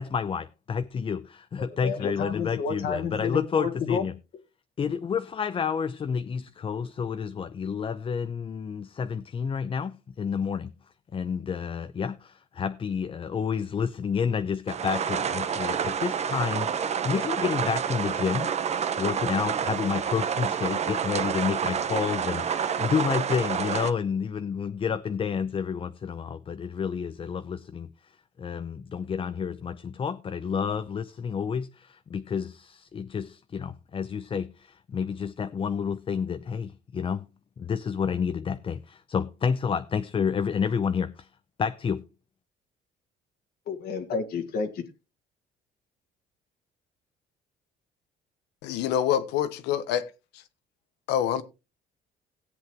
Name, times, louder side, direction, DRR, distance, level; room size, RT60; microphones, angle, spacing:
voice 1, 0.0-4.1 4.8-10.7 11.1-18.5 19.0-27.9 28.4-37.3 37.6-41.3 41.6-42.0, left 6 dB, 30° left, 0.6 m, -30 dB
voice 2, 1.8-4.0 43.7-44.8, left 5 dB, 65° left, 1.8 m, -30 dB
sound 1, 14.7-23.9, right 7 dB, 40° right, 1.0 m, -28 dB
voice 3, 48.6-50.0 51.1-51.4, left 10 dB, 90° left, 1.2 m, -26 dB
17.5 x 8.2 x 3.0 m
cardioid pair, 110°, 17 cm